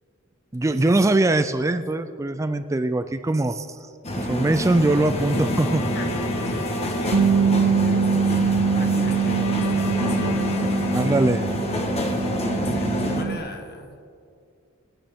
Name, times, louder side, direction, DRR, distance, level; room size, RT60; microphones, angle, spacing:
voice 1, 0.5-3.8 4.2-5.8 10.9-11.4, right 2 dB, 15° right, 9 dB, 0.4 m, -22 dB
sound 1, 4.0-13.2, equal, 30° left, 1.3 m, -27 dB
Bowed string instrument, 4.9-8.1 9.1-12.0, left 5 dB, 75° left, 0.4 m, -35 dB
voice 2, 6.3-7.3 7.6-11.3 12.5-14.0, left 2 dB, 50° left, 5 dB, 1.4 m, -38 dB
Bass guitar, 7.1-13.4, right 5 dB, 75° right, 0.6 m, -23 dB
25.0 x 8.9 x 3.6 m, 2.4 s
head